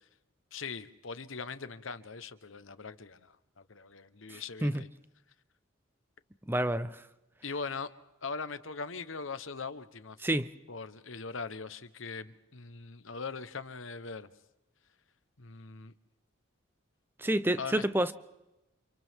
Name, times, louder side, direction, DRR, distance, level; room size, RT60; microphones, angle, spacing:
voice 1, 0.5-4.9 7.4-7.9 8.2-10.2 10.7-14.3 15.4-15.9 17.6-18.1, left 4 dB, 85° left, 1.2 m, -41 dB
voice 2, 4.3-4.8 6.5-7.0 10.2-10.5 17.2-18.1, right 1 dB, 10° right, 0.7 m, -29 dB
29.5 x 28.0 x 3.7 m
head